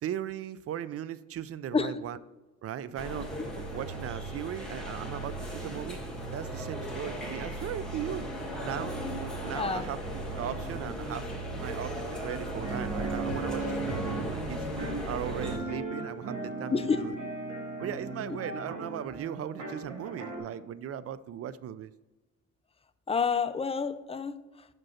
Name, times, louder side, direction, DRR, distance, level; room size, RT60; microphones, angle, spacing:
voice 1, 0.0-2.2 2.6-3.3 3.7-6.0 6.3-8.3 8.6-10.0 10.4-11.3 11.6-14.7 15.0-17.1 17.8-21.9, right 10 dB, 50° right, 0.4 m, -38 dB
sound 1, 3.0-15.6, right 1 dB, ahead, 1.8 m, -36 dB
voice 2, 9.5-9.9 16.7-17.1 23.1-24.7, left 5 dB, 20° left, 0.5 m, -29 dB
sound 2, 12.6-20.4, right 3 dB, 80° right, 2.1 m, -37 dB
6.1 x 5.2 x 5.7 m
cardioid pair, 90°, 30 cm